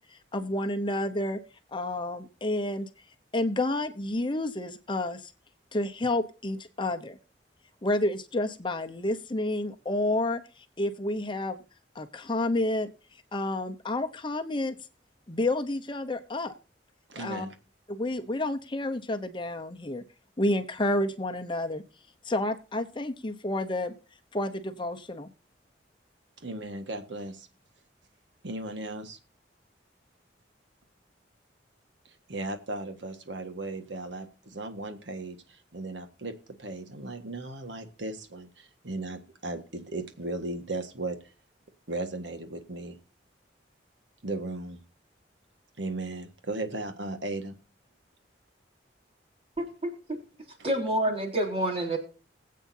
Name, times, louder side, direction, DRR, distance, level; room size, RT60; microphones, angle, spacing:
voice 1, 0.1-1.4 1.7-2.9 3.3-5.3 5.7-7.2 7.8-11.6 11.9-12.9 13.3-14.8 15.3-16.5 17.2-17.5 17.9-20.0 20.4-21.8 22.2-24.0 24.3-25.3, left 1 dB, 25° left, 7 dB, 0.8 m, -30 dB
voice 2, 17.1-17.5 26.4-27.5 28.4-29.2 32.0-41.2 41.9-43.0 44.2-44.8 45.8-47.6, right 2 dB, 85° right, 7 dB, 1.6 m, -36 dB
voice 3, 49.6-50.2 50.6-52.0, right 1 dB, 35° right, 1 dB, 3.8 m, -28 dB
20.5 x 8.4 x 2.7 m, 0.34 s
head